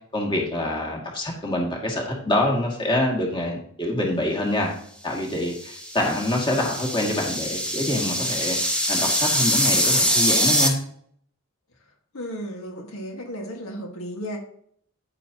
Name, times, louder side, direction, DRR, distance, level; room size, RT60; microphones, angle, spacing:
voice 1, 0.1-4.7 5.0-10.7, left 1 dB, 25° left, -1 dB, 2.3 m, -26 dB
sound 1, 5.5-10.7, equal, 5° left, 1.3 m, -23 dB
voice 2, 12.1-14.4, equal, 85° left, 1 dB, 1.8 m, -34 dB
9.7 x 9.4 x 2.9 m, 0.63 s
head